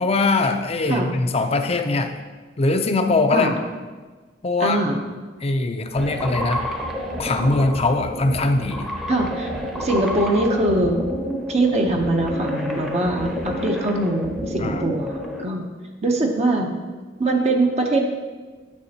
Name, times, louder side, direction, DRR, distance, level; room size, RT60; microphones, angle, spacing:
voice 1, 0.0-2.2 2.6-3.5 4.4-4.8 5.4-6.7 7.2-8.9 14.6-14.8, left 3 dB, 35° left, 6 dB, 0.5 m, -21 dB
voice 2, 4.6-5.0 9.1-9.5 9.8-11.0 11.5-15.6 16.0-16.7 17.2-18.0, right 2 dB, 35° right, 2 dB, 0.7 m, -22 dB
sound 1, 6.0-15.4, equal, ahead, 0.8 m, -29 dB
9.6 x 6.8 x 2.8 m, 1.4 s
head